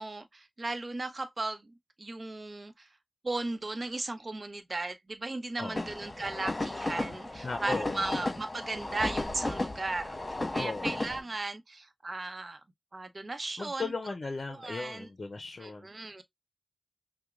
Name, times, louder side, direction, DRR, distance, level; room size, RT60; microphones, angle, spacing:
voice 1, 0.0-2.9 3.2-10.2 10.5-12.6 12.9-13.9 14.5-15.1 15.6-16.2, right 2 dB, 55° right, 0.7 m, -36 dB
voice 2, 5.6-5.9 7.4-8.2 10.6-11.0 13.6-15.9, left 3 dB, 65° left, 0.5 m, -37 dB
sound 1, 5.8-11.2, left 2 dB, 45° left, 1.1 m, -34 dB
5.9 x 2.1 x 2.4 m
cardioid pair, 40°, 0 cm